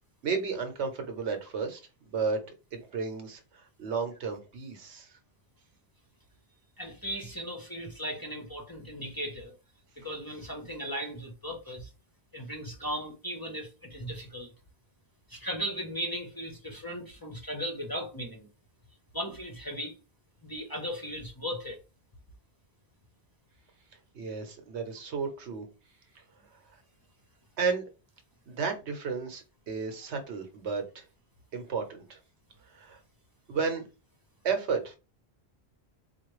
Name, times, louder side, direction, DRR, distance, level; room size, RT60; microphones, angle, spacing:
voice 1, 0.2-3.4 3.8-5.1 24.1-25.7 27.6-27.8 28.5-31.0 31.5-32.2 32.7-33.0 33.5-33.9 34.4-35.0, right 5 dB, 85° right, 1.2 m, -33 dB
voice 2, 6.8-9.6 10.0-11.9 12.3-14.5 15.3-18.5 19.1-20.0 20.4-21.8 29.9-30.0, equal, 25° left, 0.6 m, -37 dB
4.3 x 2.3 x 3.1 m
omnidirectional pair, 1.1 m